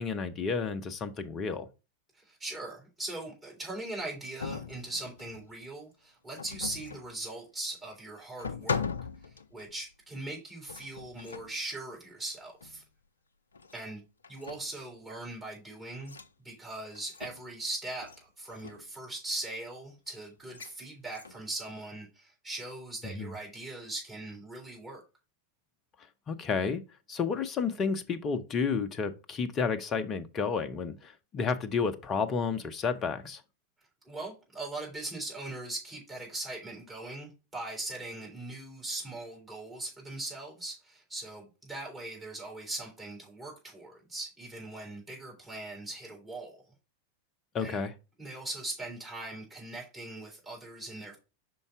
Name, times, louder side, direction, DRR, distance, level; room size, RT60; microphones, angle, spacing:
voice 1, 0.0-1.7 23.0-23.3 26.3-26.8 27.1-33.4 47.5-47.9, left 5 dB, 25° left, 0.7 m, -31 dB
voice 2, 2.1-8.9 9.2-12.8 13.7-14.0 14.3-16.2 16.4-25.0 34.0-46.6 47.6-47.8 48.2-51.2, right 2 dB, 15° right, 3.5 m, -40 dB
sound 1, 4.4-5.6 6.4-7.1 7.9-8.0 8.4-9.9 10.7-11.6 12.6-12.8 13.5-13.9 14.2-14.9 16.0-16.3 17.0-17.6 18.0-18.2 18.5-18.9 20.5-20.7 21.1-21.5, left 5 dB, 75° left, 0.4 m, -39 dB
5.4 x 4.6 x 4.6 m
figure-of-eight pair, 90°, 0 cm